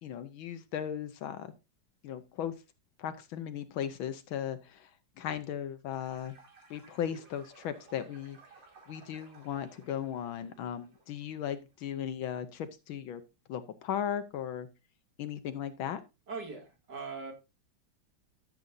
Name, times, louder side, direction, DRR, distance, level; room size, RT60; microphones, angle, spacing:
voice 1, 0.0-1.5 2.0-2.5 3.0-4.9 5.2-6.3 6.7-8.4 8.9-13.2 13.5-14.7 15.2-16.0, left 9 dB, 70° left, 11 dB, 1.5 m, -37 dB
sound 1, 5.9-11.6, right 3 dB, 75° right, 3.8 m, -58 dB
voice 2, 16.3-17.3, right 4 dB, 50° right, 2 dB, 2.8 m, -40 dB
13.5 x 7.7 x 2.6 m, 0.26 s
omnidirectional pair, 2.4 m